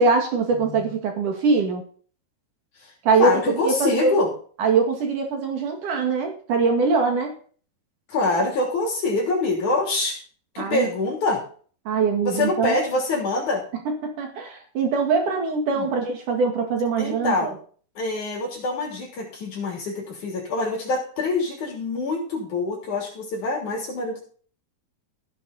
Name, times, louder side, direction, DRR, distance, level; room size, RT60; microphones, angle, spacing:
voice 1, 0.0-1.8 3.0-4.2 4.6-7.3 10.6-10.9 11.9-12.8 14.0-17.5, right 4 dB, 65° right, 3 dB, 3.4 m, -22 dB
voice 2, 0.5-0.9 2.8-2.9 3.2-4.3 8.1-10.2 10.5-11.4 12.2-13.6 15.7-15.9 17.0-17.5 18.0-24.2, left 2 dB, 60° left, -1 dB, 4.5 m, -25 dB
14.5 x 9.8 x 4.1 m, 0.43 s
omnidirectional pair, 4.0 m